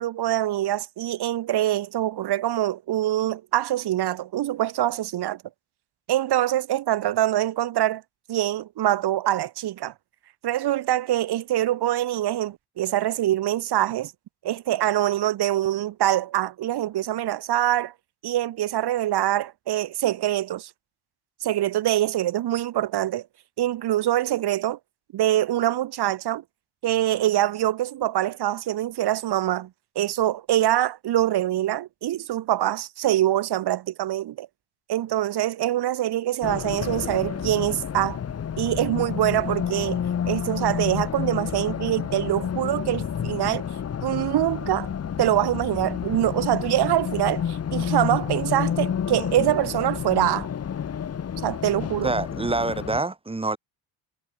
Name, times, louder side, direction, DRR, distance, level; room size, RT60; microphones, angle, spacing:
voice 1, 0.0-5.4 6.1-8.0 8.3-9.9 10.4-14.1 14.4-17.9 18.2-20.7 21.4-23.3 23.6-24.8 25.1-26.4 26.8-29.7 30.0-34.5 34.9-38.2 38.6-40.0 40.3-43.7 44.0-44.9 45.2-50.5 51.4-52.1, right 13 dB, 70° right, 2.1 m, -24 dB
Race car auto racing, 36.4-53.0, left 8 dB, 35° left, 1.3 m, -30 dB
voice 2, 52.0-53.6, right 3 dB, 15° right, 3.0 m, -26 dB
cardioid pair, 130°, 41 cm